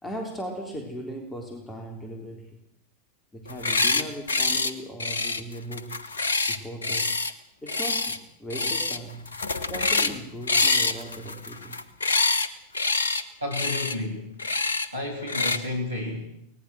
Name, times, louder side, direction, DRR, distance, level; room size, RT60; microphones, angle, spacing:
voice 1, 0.0-2.6 3.3-6.0 6.5-7.2 7.6-9.3 9.6-11.8 13.1-13.4, right 1 dB, 10° left, 2 dB, 3.7 m, -38 dB
sound 1, 3.5-4.0 4.3-4.7 5.0-7.3 7.7-8.2 8.5-9.0 9.2-10.2 10.5-12.5 12.7-13.2 13.5-13.9 14.4-14.9 15.3-15.6, left 3 dB, 70° left, 1.2 m, -25 dB
voice 2, 13.4-14.4 14.9-16.3, left 2 dB, 80° right, 1 dB, 3.2 m, -31 dB
24.0 x 19.0 x 6.3 m, 0.74 s
figure-of-eight pair, 90°, 0 cm